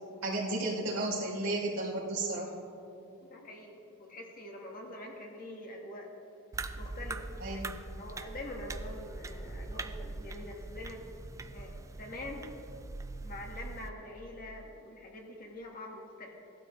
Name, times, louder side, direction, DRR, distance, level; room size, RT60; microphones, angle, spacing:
voice 1, 0.2-2.5 7.4-7.7, right 2 dB, 80° right, -6 dB, 3.3 m, -33 dB
voice 2, 3.3-6.1 6.8-7.7 8.0-11.0 11.4-12.5 13.2-16.3, left 1 dB, 45° left, 0 dB, 1.6 m, -45 dB
sound 1, 6.5-13.9, right 2 dB, 15° right, 0.3 m, -42 dB
17.0 x 12.0 x 3.1 m, 2.8 s
head